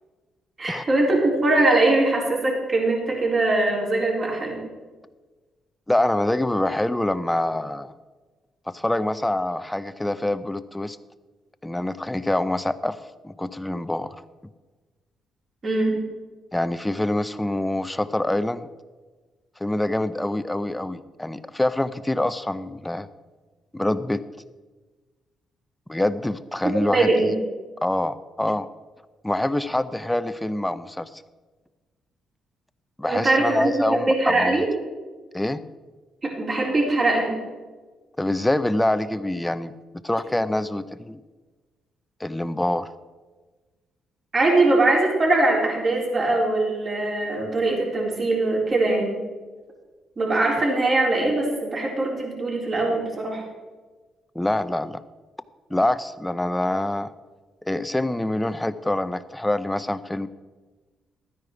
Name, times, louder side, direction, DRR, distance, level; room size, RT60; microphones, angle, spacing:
voice 1, 0.6-4.6 15.6-16.0 26.9-27.3 33.1-34.7 36.2-37.4 44.3-49.2 50.2-53.4, right 2 dB, 40° right, -3 dB, 4.0 m, -21 dB
voice 2, 5.9-7.9 8.7-11.0 11.6-13.0 13.2-14.2 16.5-18.7 19.6-23.1 23.7-24.2 25.9-27.3 27.8-28.7 29.2-31.1 33.0-34.6 35.3-35.6 38.2-41.2 42.2-42.9 54.3-55.0 55.7-57.1 57.6-60.3, left 1 dB, 10° left, 14 dB, 0.6 m, -25 dB
13.0 x 9.7 x 4.8 m, 1.3 s
cardioid pair, 90°, 0 cm